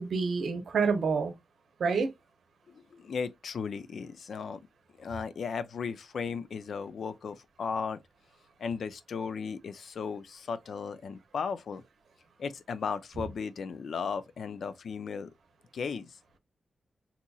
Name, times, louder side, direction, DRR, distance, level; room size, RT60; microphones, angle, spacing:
voice 1, 0.0-1.3 1.8-2.1, right 5 dB, 70° right, 0.7 m, -27 dB
voice 2, 2.7-4.6 5.0-8.0 8.6-11.8 12.4-15.3 15.7-16.2, left 5 dB, 65° left, 0.4 m, -36 dB
4.0 x 2.8 x 2.3 m
wide cardioid pair, 180°, 0 cm